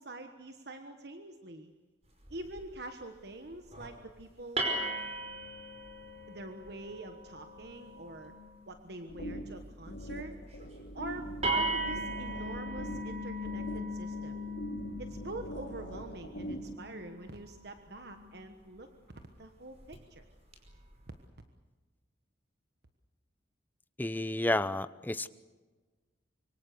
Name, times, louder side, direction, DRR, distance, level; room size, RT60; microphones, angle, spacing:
voice 1, 0.0-1.7 2.3-4.7 6.3-8.3 8.7-10.3 10.9-14.4 15.0-18.9 19.4-20.2, right 2 dB, 60° right, 7 dB, 1.4 m, -45 dB
sound 1, 2.2-2.7 3.5-3.9 4.6-8.9 10.5-10.7 11.0-11.1 11.4-18.5 19.8-20.0 20.5-21.0, right 1 dB, 35° right, 5.2 m, -38 dB
sound 2, 9.1-16.8, equal, 70° left, 3.3 m, -42 dB
voice 2, 24.0-25.3, left 1 dB, 10° left, 14 dB, 0.7 m, -31 dB
25.5 x 24.0 x 6.8 m, 1.3 s
head